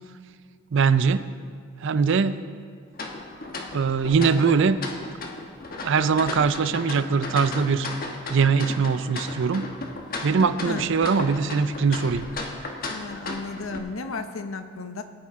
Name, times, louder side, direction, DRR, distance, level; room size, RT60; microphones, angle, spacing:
voice 1, 0.7-1.3 1.8-2.4 3.7-4.8 5.8-7.9 8.3-9.7 10.2-12.3, right 5 dB, 65° right, 13 dB, 0.5 m, -22 dB
sound 1, 2.9-13.8, left 2 dB, 45° left, 1.2 m, -35 dB
voice 2, 12.9-15.0, left 3 dB, 90° left, 8 dB, 0.8 m, -34 dB
17.5 x 8.7 x 3.6 m, 2.1 s
head